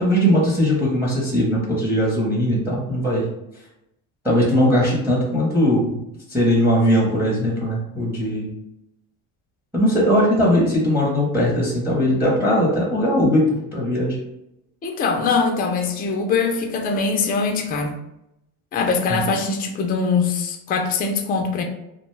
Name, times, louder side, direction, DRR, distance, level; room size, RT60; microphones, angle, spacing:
voice 1, 0.0-3.2 4.2-6.0 6.3-8.5 9.7-13.4 13.7-14.2 19.1-19.2, equal, 5° right, -3 dB, 0.7 m, -19 dB
voice 2, 14.8-18.0 18.7-21.6, left 4 dB, 25° left, 3 dB, 0.3 m, -22 dB
2.4 x 2.2 x 3.1 m, 0.85 s
cardioid pair, 105°, 44 cm